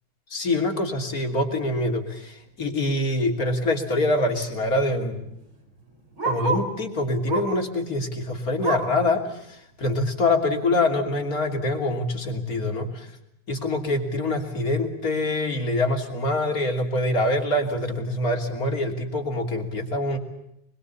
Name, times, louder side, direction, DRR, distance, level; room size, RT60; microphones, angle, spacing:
voice 1, 0.3-5.2 6.2-9.3 9.8-13.1 13.5-20.2, left 2 dB, 45° left, 3 dB, 3.5 m, -25 dB
Bark, 3.2-3.3 3.6-3.7 3.9-6.8 7.2-7.7 8.0-9.0 9.5-9.6 10.0-10.1 10.8-10.9, right 4 dB, 85° right, 4.9 m, -30 dB
24.5 x 22.5 x 8.4 m, 0.79 s
omnidirectional pair, 2.2 m